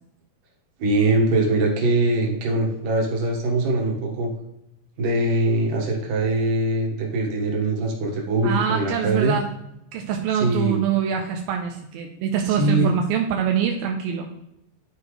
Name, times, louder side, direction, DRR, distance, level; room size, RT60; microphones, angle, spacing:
voice 1, 0.8-4.3 5.0-9.4 10.3-10.8 12.5-12.9, right 2 dB, 60° right, -1 dB, 2.8 m, -22 dB
voice 2, 8.4-9.5 9.9-14.3, right 8 dB, 80° right, 2 dB, 2.3 m, -24 dB
12.0 x 4.7 x 3.2 m, 0.83 s
omnidirectional pair, 4.7 m